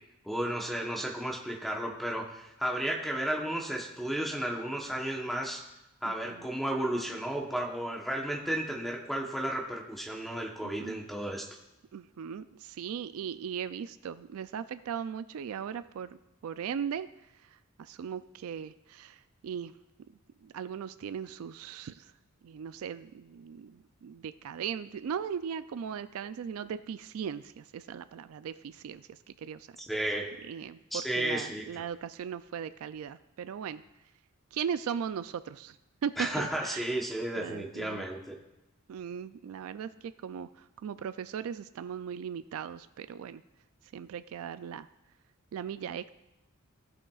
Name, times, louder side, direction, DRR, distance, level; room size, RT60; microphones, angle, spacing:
voice 1, 0.2-5.6 6.0-11.5 29.9-30.3 30.9-31.8 36.2-38.3, right 1 dB, ahead, 0 dB, 0.9 m, -33 dB
voice 2, 6.0-6.5 10.6-11.0 11.9-17.1 17.4-17.5 17.8-19.7 20.4-22.1 22.4-29.7 30.5-33.8 34.5-35.8 36.0-36.9 37.4-38.1 38.9-43.4 43.9-44.9 45.5-46.1, right 7 dB, 75° right, 13 dB, 0.3 m, -38 dB
16.0 x 5.8 x 2.4 m, 0.93 s
head